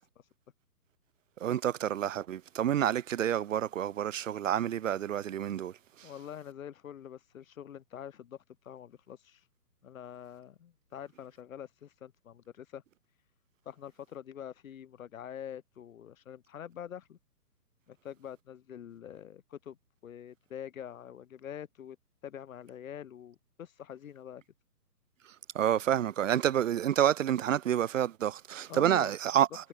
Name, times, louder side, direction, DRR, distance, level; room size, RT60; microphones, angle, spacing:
voice 1, 1.4-5.7 6.0-6.1 25.5-29.7, right 10 dB, 55° right, 0.6 m, -28 dB
voice 2, 6.0-9.4 9.8-12.8 13.7-17.2 17.9-19.8 20.0-22.0 22.2-24.4 28.7-29.1, left 9 dB, 55° left, 2.5 m, -45 dB
hypercardioid pair, 145°, 49 cm